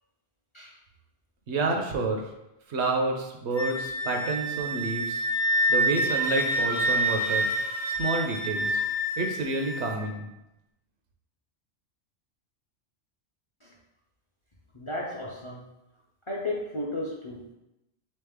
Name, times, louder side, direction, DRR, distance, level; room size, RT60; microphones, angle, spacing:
voice 1, 1.5-2.2 2.7-5.2 5.7-7.5 7.9-8.8 9.2-10.3, right 3 dB, 75° right, 3 dB, 0.9 m, -29 dB
Wind instrument woodwind instrument, 3.5-9.9, equal, 90° left, 1.1 m, -27 dB
voice 2, 14.7-15.6 16.3-17.5, left 1 dB, 40° left, -3 dB, 0.5 m, -34 dB
3.5 x 3.3 x 3.5 m, 0.91 s
omnidirectional pair, 1.2 m